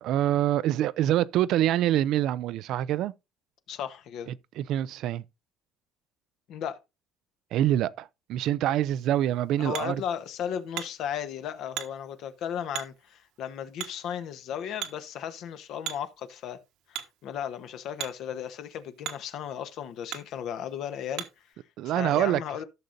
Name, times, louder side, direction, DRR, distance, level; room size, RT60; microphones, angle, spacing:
voice 1, 0.0-3.1 4.6-5.2 7.5-10.0 21.8-22.4, right 12 dB, 60° right, 0.4 m, -25 dB
voice 2, 3.7-4.3 6.5-6.8 9.6-16.6 16.9-21.2 21.8-22.6, left 9 dB, 60° left, 1.1 m, -35 dB
Hammer, 8.9-21.5, right 12 dB, 80° right, 1.5 m, -43 dB
14.5 x 6.5 x 2.6 m
cardioid pair, 150°, 0 cm